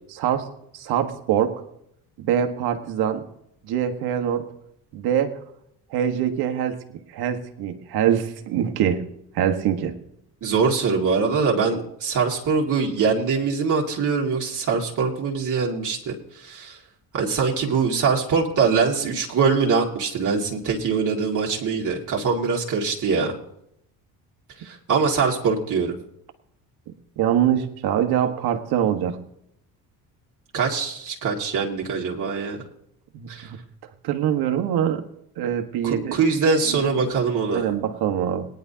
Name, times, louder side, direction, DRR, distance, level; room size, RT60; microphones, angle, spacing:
voice 1, 0.1-0.5 0.7-1.5 2.2-3.2 3.6-4.5 4.9-5.4 5.9-6.8 7.1-9.1 9.3-10.0 27.2-29.2 33.1-33.6 34.0-35.0 35.4-36.2 36.7-36.8 37.5-38.5, right 9 dB, 70° right, 5 dB, 1.5 m, -23 dB
voice 2, 10.4-16.8 17.1-23.3 24.6-25.9 30.5-32.6 33.3-33.5 35.8-37.7, right 5 dB, 50° right, -2 dB, 2.2 m, -23 dB
18.0 x 10.5 x 2.8 m, 0.75 s
supercardioid pair, 80°, 39 cm